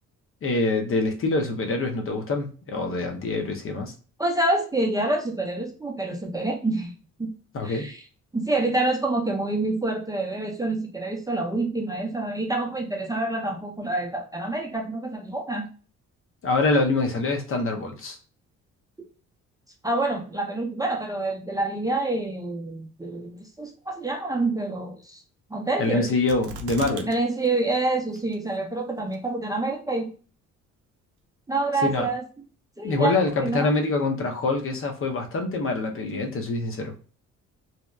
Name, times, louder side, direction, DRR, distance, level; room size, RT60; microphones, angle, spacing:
voice 1, 0.4-3.9 7.5-7.9 16.4-18.2 25.8-27.1 31.8-32.1 32.8-36.9, left 3 dB, 45° left, 4 dB, 0.6 m, -25 dB
voice 2, 4.2-6.9 7.2-7.3 7.6-8.0 8.3-15.7 19.8-25.2 25.5-26.1 27.1-30.1 31.5-32.2 32.8-33.1 33.4-33.7, right 2 dB, 10° right, 0 dB, 0.5 m, -27 dB
sound 1, 26.3-27.1 27.4-27.5 28.1-28.6 29.1-29.2, right 4 dB, 85° right, 0.5 m, -37 dB
2.7 x 2.0 x 2.3 m, 0.39 s
cardioid pair, 90°, 30 cm